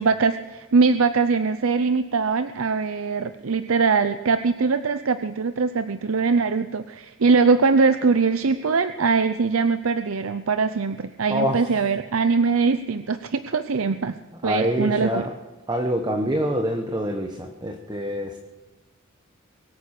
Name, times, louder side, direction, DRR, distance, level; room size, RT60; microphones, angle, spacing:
voice 1, 0.0-14.2 14.4-15.2, right 4 dB, 80° right, 10 dB, 0.6 m, -22 dB
voice 2, 11.3-11.7 14.4-15.3 15.7-18.4, equal, 20° right, 3 dB, 1.2 m, -25 dB
23.0 x 9.4 x 6.5 m, 1.3 s
head